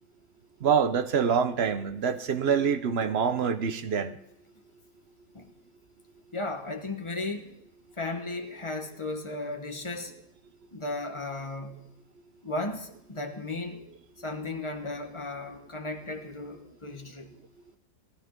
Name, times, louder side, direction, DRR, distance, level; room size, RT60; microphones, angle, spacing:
voice 1, 0.6-4.1, right 6 dB, 55° right, 10 dB, 0.8 m, -25 dB
voice 2, 6.3-7.5 8.0-10.1 10.7-11.9 12.4-13.8 14.2-17.3, left 2 dB, 20° left, 4 dB, 0.9 m, -35 dB
17.5 x 11.5 x 3.7 m, 0.80 s
omnidirectional pair, 1.8 m